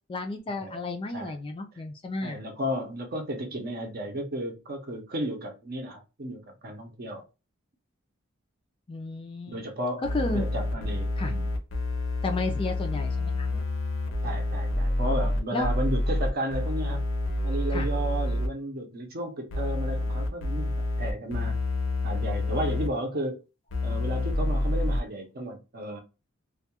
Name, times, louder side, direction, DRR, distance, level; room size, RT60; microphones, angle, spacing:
voice 1, 0.1-2.4 8.9-9.6 10.1-10.5 11.2-11.3 12.2-13.5 15.5-15.7 17.7-17.9, left 2 dB, 25° left, 0.3 m, -32 dB
voice 2, 2.2-7.2 9.5-10.0 10.3-11.5 14.2-17.0 17.4-21.6 22.0-23.4 23.8-26.0, right 1 dB, 50° right, 0.6 m, -33 dB
sound 1, 10.0-18.5 19.5-22.9 23.7-25.0, left 2 dB, 70° left, 0.6 m, -28 dB
2.2 x 2.2 x 2.8 m
head